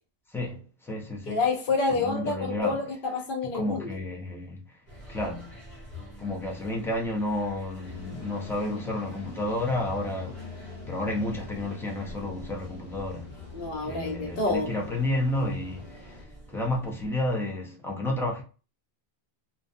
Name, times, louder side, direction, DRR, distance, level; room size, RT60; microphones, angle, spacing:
voice 1, 0.3-1.4 1.9-2.9 3.5-4.8 5.1-5.5 6.2-13.3 13.8-16.2 16.5-18.4, left 1 dB, 5° left, 0.4 m, -31 dB
voice 2, 1.3-4.0 13.5-14.7, left 3 dB, 60° left, 0.9 m, -28 dB
sound 1, 4.9-17.1, left 3 dB, 30° left, 1.3 m, -45 dB
sound 2, 7.8-16.2, left 2 dB, 80° left, 1.2 m, -47 dB
2.5 x 2.1 x 2.5 m
omnidirectional pair, 1.1 m